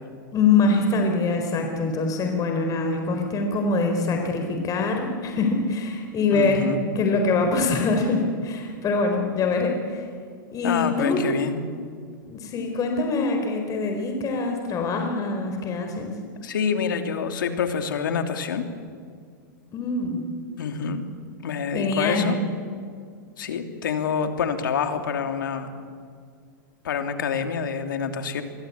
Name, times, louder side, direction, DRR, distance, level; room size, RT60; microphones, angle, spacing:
voice 1, 0.3-6.7 6.9-10.1 10.5-11.4 12.3-16.1 19.7-20.2 21.7-22.3, left 3 dB, 30° left, 4 dB, 4.3 m, -24 dB
voice 2, 6.3-6.9 10.6-11.6 16.4-18.6 20.6-21.0 21.4-22.4 23.4-25.7 26.8-28.4, left 6 dB, 80° left, 6 dB, 3.0 m, -27 dB
26.5 x 23.0 x 8.6 m, 2.1 s
hypercardioid pair, 110°, 11 cm